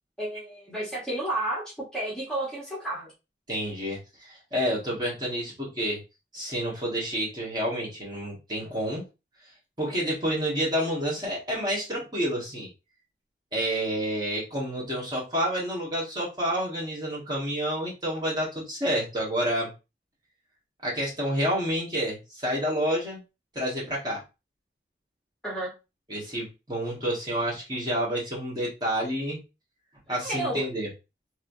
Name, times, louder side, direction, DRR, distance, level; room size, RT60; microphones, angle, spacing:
voice 1, 0.2-1.6 1.9-3.1 25.4-25.7 30.2-30.6, right 1 dB, 5° left, -7 dB, 1.0 m, -31 dB
voice 2, 3.5-6.0 6.3-9.0 9.8-12.7 13.5-19.7 20.8-23.2 23.5-24.2 26.1-29.4 30.1-30.9, equal, 25° right, -5 dB, 1.3 m, -29 dB
3.2 x 2.9 x 2.6 m, 0.28 s
head